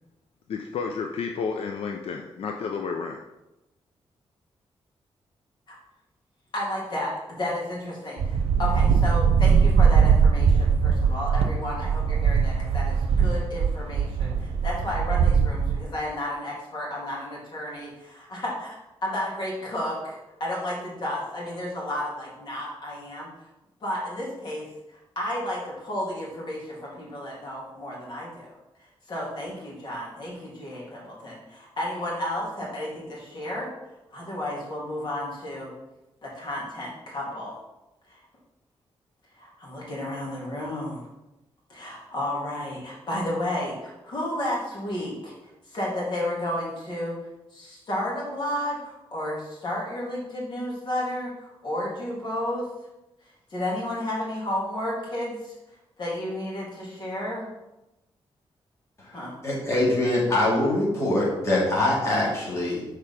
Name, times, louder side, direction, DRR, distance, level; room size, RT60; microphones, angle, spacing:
voice 1, 0.5-3.2, left 5 dB, 75° left, 3 dB, 0.6 m, -31 dB
voice 2, 6.5-23.3 23.8-24.7 25.1-28.5 29.1-33.7 34.1-35.7 36.2-37.6 38.1-38.2 39.4-41.0 41.7-45.3 45.7-47.1 47.5-52.7 53.5-55.6 56.0-57.5 59.1-59.3, left 1 dB, 50° left, -5 dB, 2.9 m, -32 dB
sound 1, 8.2-15.8, right 6 dB, 80° right, 0.9 m, -21 dB
voice 3, 59.4-62.9, left 1 dB, 30° left, -5 dB, 2.5 m, -23 dB
6.7 x 4.7 x 5.7 m, 0.97 s
wide cardioid pair, 165°, 10 cm